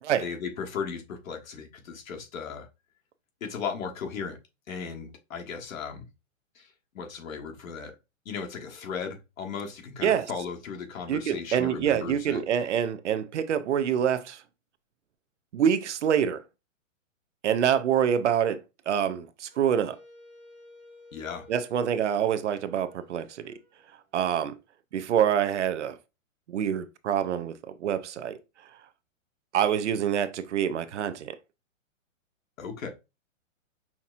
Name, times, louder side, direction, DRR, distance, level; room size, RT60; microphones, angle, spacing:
voice 1, 0.2-2.7 3.4-4.4 4.7-6.1 6.5-6.7 6.9-7.9 8.2-12.4 21.1-21.5 32.6-32.9, left 6 dB, 80° left, 1.4 m, -36 dB
voice 2, 11.1-14.4 15.5-16.4 17.4-20.0 21.5-23.6 24.1-24.5 24.9-26.0 26.5-28.4 29.5-31.4, right 9 dB, 60° right, 0.5 m, -26 dB
Wind instrument woodwind instrument, 19.5-24.4, left 2 dB, 10° right, 0.9 m, -53 dB
5.7 x 2.8 x 2.4 m
hypercardioid pair, 175°, 40 cm